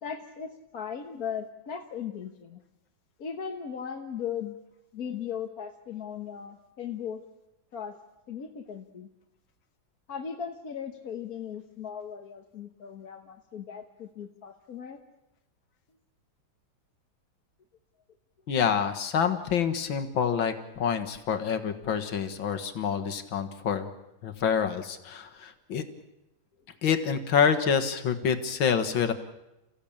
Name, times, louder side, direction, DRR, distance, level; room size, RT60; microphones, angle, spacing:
voice 1, 0.0-2.6 3.2-4.6 4.9-7.2 7.7-8.0 8.3-9.1 10.1-15.0, left 7 dB, 55° left, 4 dB, 1.6 m, -37 dB
voice 2, 18.5-23.9 24.2-25.8 26.8-29.1, left 7 dB, 85° left, 7 dB, 2.3 m, -27 dB
29.0 x 16.0 x 8.8 m, 0.93 s
omnidirectional pair, 2.1 m